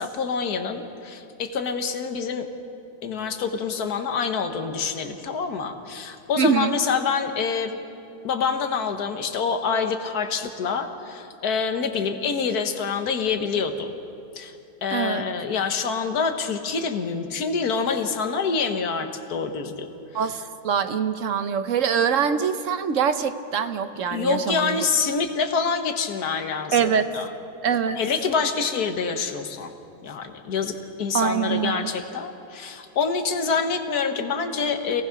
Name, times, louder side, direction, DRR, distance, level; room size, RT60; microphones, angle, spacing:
voice 1, 0.0-2.5 3.0-7.8 8.2-13.9 14.3-14.5 14.8-19.9 24.1-26.8 27.1-27.3 28.0-29.7 30.0-35.0, left 5 dB, 65° left, 6 dB, 1.7 m, -26 dB
voice 2, 6.4-6.7 14.9-15.2 20.1-24.8 26.7-27.1 27.6-28.0 31.1-31.9, right 7 dB, 55° right, 10 dB, 1.0 m, -24 dB
26.5 x 18.0 x 5.9 m, 2.7 s
omnidirectional pair, 1.8 m